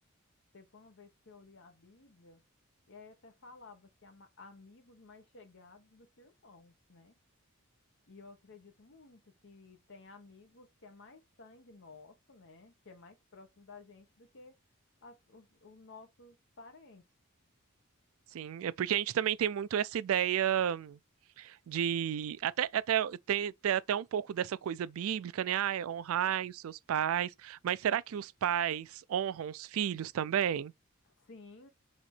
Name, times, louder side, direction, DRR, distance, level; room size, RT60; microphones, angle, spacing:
voice 1, 0.5-2.4 2.9-7.1 8.1-14.6 15.0-17.0 31.2-31.7, left 3 dB, 60° left, 1.1 m, -55 dB
voice 2, 18.3-21.0 21.4-30.7, right 9 dB, 70° right, 0.3 m, -32 dB
4.2 x 2.8 x 4.4 m
head